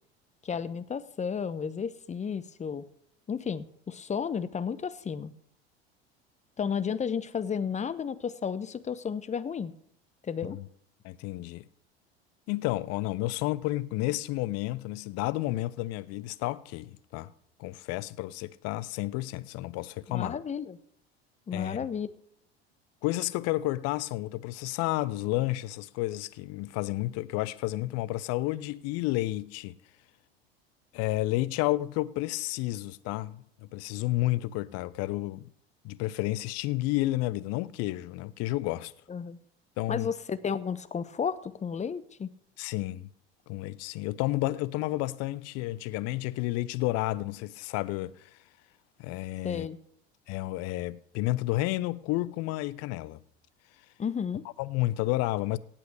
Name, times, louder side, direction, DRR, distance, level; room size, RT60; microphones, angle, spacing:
voice 1, 0.4-2.9 3.3-5.3 6.6-9.7 10.2-10.6 20.1-20.8 21.5-22.1 39.1-39.4 39.9-42.3 49.4-49.8 54.0-54.5, left 6 dB, 20° left, 1.0 m, -32 dB
voice 2, 11.0-11.7 12.5-17.3 17.6-20.4 21.5-21.9 23.0-29.8 30.9-35.5 35.8-38.9 39.8-40.1 42.6-43.1 43.5-48.4 49.0-49.7 50.3-53.2 54.6-55.6, left 17 dB, 50° left, 0.8 m, -31 dB
17.0 x 5.7 x 8.2 m
figure-of-eight pair, 70°, 31 cm